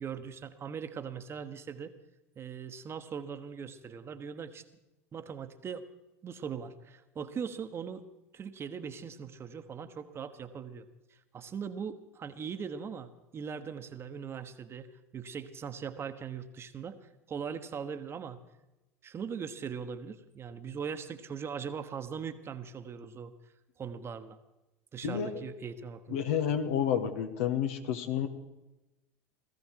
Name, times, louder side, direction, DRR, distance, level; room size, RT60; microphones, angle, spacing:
voice 1, 0.0-1.9 2.3-4.6 5.1-5.9 6.2-8.0 8.3-10.8 11.3-18.4 19.0-23.3 23.8-24.4 24.9-26.3, right 6 dB, 30° right, 9 dB, 1.3 m, -40 dB
voice 2, 26.1-28.3, left 8 dB, 65° left, 7 dB, 1.5 m, -30 dB
17.5 x 15.0 x 4.7 m, 1.0 s
hypercardioid pair, 80°, 8 cm